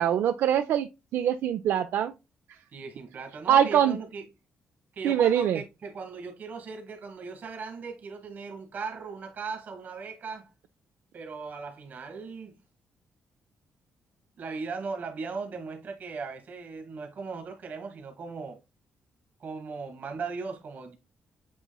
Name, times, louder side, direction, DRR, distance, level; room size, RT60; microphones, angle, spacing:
voice 1, 0.0-2.1 3.5-4.0 5.0-5.6, right 9 dB, 75° right, 0.3 m, -23 dB
voice 2, 2.7-4.3 4.9-10.5 11.1-12.6 14.4-18.6 19.4-20.9, right 4 dB, 50° right, 1.4 m, -38 dB
8.0 x 3.0 x 2.2 m
cardioid pair, 155°, 4 cm